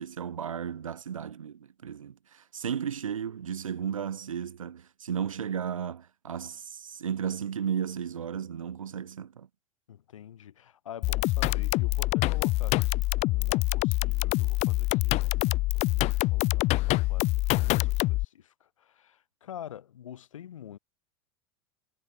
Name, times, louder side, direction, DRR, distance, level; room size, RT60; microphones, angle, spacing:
voice 1, 0.0-9.5, right 8 dB, 75° right, 2.5 m, -34 dB
voice 2, 9.9-20.8, left 10 dB, 70° left, 4.7 m, -46 dB
sound 1, 11.0-18.2, left 20 dB, 40° left, 0.7 m, -26 dB
figure-of-eight pair, 80°, 17 cm